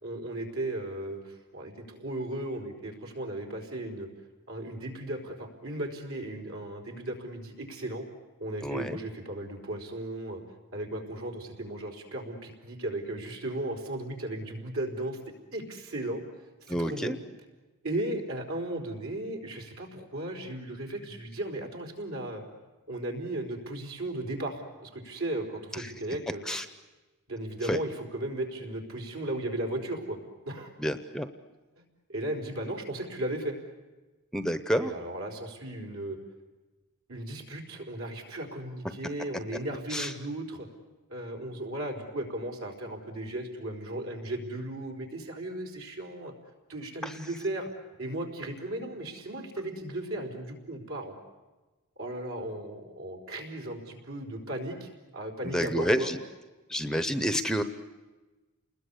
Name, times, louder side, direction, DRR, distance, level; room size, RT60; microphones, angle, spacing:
voice 1, 0.0-4.1 4.5-8.1 8.4-10.4 10.7-15.2 15.5-16.2 16.6-17.2 17.8-22.4 22.9-26.5 27.3-30.2 30.5-30.7 32.1-33.6 34.7-36.2 37.1-40.7 41.1-46.3 46.7-47.7 48.0-51.1 52.0-56.1, right 1 dB, 65° right, 2 dB, 4.6 m, -36 dB
voice 2, 8.6-9.0 16.7-17.2 25.7-25.9 26.5-26.6 27.6-27.8 30.8-31.3 34.3-34.9 39.9-40.1 47.0-47.1 55.5-56.2 56.7-57.6, equal, 5° left, 10 dB, 0.8 m, -29 dB
29.5 x 21.0 x 8.4 m, 1.2 s
head